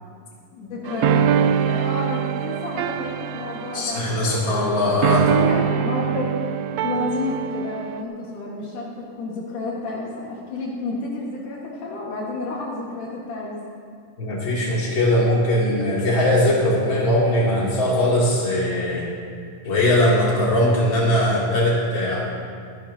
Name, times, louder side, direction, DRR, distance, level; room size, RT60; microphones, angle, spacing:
voice 1, 0.5-6.3 6.8-13.6, left 3 dB, 75° left, -4 dB, 3.2 m, -30 dB
sound 1, 0.9-8.0, right 9 dB, 90° right, 1.5 m, -24 dB
voice 2, 3.7-5.2 14.2-19.0 19.6-22.2, left 1 dB, 40° left, -6 dB, 3.4 m, -20 dB
26.0 x 10.5 x 2.8 m, 2.2 s
omnidirectional pair, 3.6 m